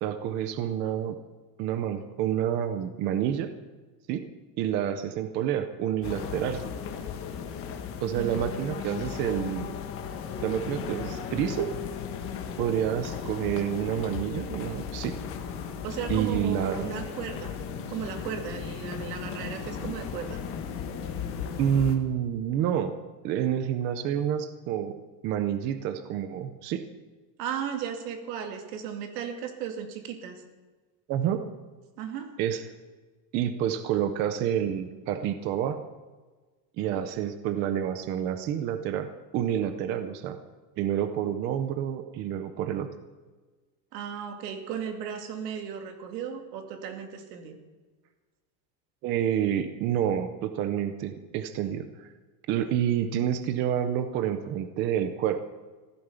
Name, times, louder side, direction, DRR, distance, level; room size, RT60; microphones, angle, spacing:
voice 1, 0.0-1.2 1.6-3.5 4.1-4.2 4.6-6.6 8.0-9.7 10.4-11.7 12.6-15.1 16.1-16.9 21.6-22.9 23.2-24.9 25.2-26.9 31.1-31.4 32.4-32.6 33.3-35.8 36.8-39.1 39.3-40.4 40.8-42.9 49.0-51.9 52.5-55.4, right 10 dB, 25° right, 10 dB, 0.5 m, -28 dB
sound 1, 6.0-22.0, left 7 dB, 25° left, 1.4 m, -36 dB
voice 2, 15.8-17.6 17.9-20.4 27.4-30.4 32.0-32.3 43.9-47.6, right 8 dB, 75° right, 5 dB, 2.8 m, -35 dB
15.0 x 12.0 x 6.9 m, 1.3 s
cardioid pair, 180°, 49 cm